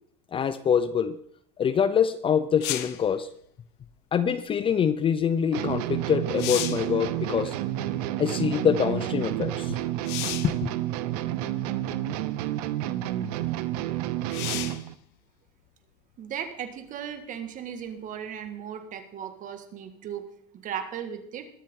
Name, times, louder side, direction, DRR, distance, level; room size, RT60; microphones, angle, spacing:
voice 1, 0.3-1.2 1.6-3.3 4.1-7.5 8.2-9.8 10.4-10.7, left 7 dB, 25° left, 14 dB, 0.6 m, -25 dB
sound 1, 2.6-3.1 5.7-5.8 6.2-6.9 10.0-10.6 11.6-11.7 14.3-14.9 18.5-18.6, left 14 dB, 55° left, 1.1 m, -33 dB
sound 2, 5.5-14.9, right 13 dB, 65° right, 0.9 m, -30 dB
voice 2, 16.2-20.3 20.6-21.5, right 8 dB, 40° right, 9 dB, 1.9 m, -36 dB
21.5 x 7.5 x 3.8 m, 0.67 s
supercardioid pair, 110°, 21 cm